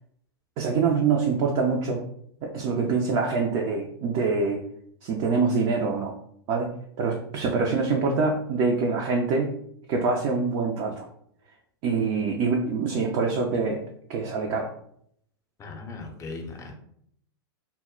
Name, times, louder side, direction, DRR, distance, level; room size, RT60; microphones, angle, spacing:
voice 1, 0.6-2.0 2.4-4.6 5.0-6.1 6.5-6.7 7.0-9.5 9.9-11.1 11.8-13.8 14.1-14.7, right 4 dB, 45° right, 0 dB, 0.4 m, -25 dB
voice 2, 15.6-16.7, left 3 dB, 25° left, 3 dB, 0.6 m, -38 dB
2.1 x 2.1 x 3.6 m, 0.68 s
hypercardioid pair, 100°, 13 cm